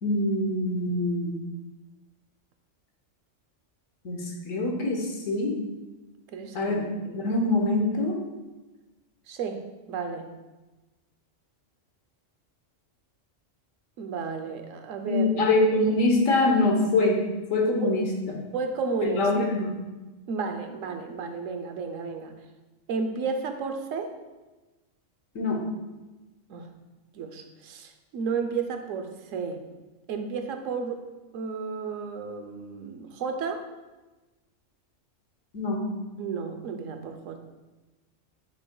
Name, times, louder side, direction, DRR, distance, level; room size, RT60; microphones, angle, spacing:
voice 1, 0.0-1.4 4.0-5.6 6.5-8.2 15.0-17.2 17.5-18.1 19.0-19.8 25.3-25.6 35.5-35.8, left 2 dB, 85° left, 1 dB, 1.5 m, -24 dB
voice 2, 6.3-6.7 9.3-9.6 9.9-10.3 14.0-15.5 17.8-17.9 18.5-19.3 20.3-22.3 22.9-24.1 26.5-26.7 27.1-29.6 30.1-31.0 31.3-33.6 36.2-37.4, right 5 dB, 80° right, 6 dB, 1.1 m, -32 dB
8.6 x 6.1 x 2.3 m, 1.1 s
omnidirectional pair, 1.3 m